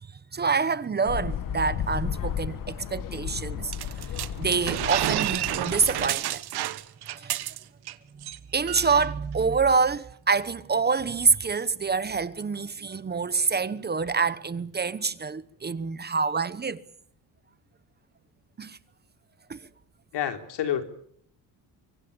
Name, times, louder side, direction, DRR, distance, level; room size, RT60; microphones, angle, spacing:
voice 1, 0.3-3.7 4.4-6.4 7.1-7.4 8.5-16.8 18.6-18.8 19.5-19.6, right 5 dB, 25° right, 1.0 m, -26 dB
sound 1, 1.1-6.1, left 9 dB, 50° left, 2.0 m, -34 dB
sound 2, 3.7-7.9 8.2-8.4 8.7-9.1, right 13 dB, 65° right, 1.5 m, -30 dB
voice 2, 20.1-20.8, left 10 dB, 80° left, 4.1 m, -28 dB
25.0 x 24.5 x 7.1 m
cardioid pair, 135°, 41 cm